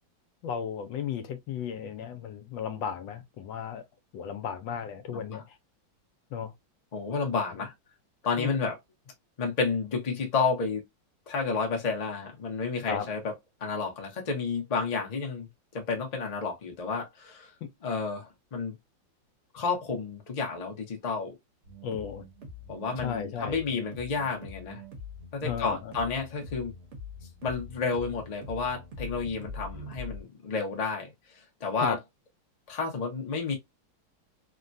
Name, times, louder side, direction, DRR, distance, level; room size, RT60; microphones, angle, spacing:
voice 1, 0.4-3.8 4.1-5.6 6.3-6.5 8.4-8.5 12.9-13.1 17.6-17.7 21.8-22.2 23.0-23.6 25.4-25.9 31.8-32.0, left 8 dB, 75° left, 1.3 m, -34 dB
voice 2, 5.1-5.4 6.9-7.7 8.2-8.8 9.4-10.8 11.3-13.3 13.6-15.5 15.7-17.5 17.8-18.8 19.5-21.4 22.7-24.8 25.3-26.7 27.4-32.0 32.7-33.5, left 4 dB, 40° left, 0.5 m, -31 dB
sound 1, 21.6-30.2, left 3 dB, 45° right, 1.0 m, -43 dB
3.5 x 2.2 x 2.5 m
omnidirectional pair, 2.1 m